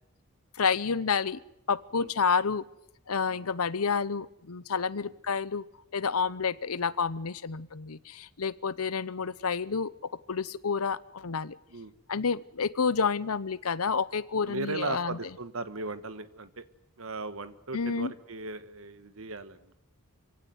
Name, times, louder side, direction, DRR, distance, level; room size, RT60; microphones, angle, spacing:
voice 1, 0.6-1.4 1.7-2.6 3.1-5.6 5.9-11.6 12.1-15.2 17.7-18.1, left 5 dB, 85° left, 17 dB, 0.8 m, -29 dB
voice 2, 14.5-16.6 17.0-19.8, right 3 dB, 70° right, 12 dB, 1.3 m, -37 dB
25.0 x 16.5 x 9.5 m, 0.84 s
head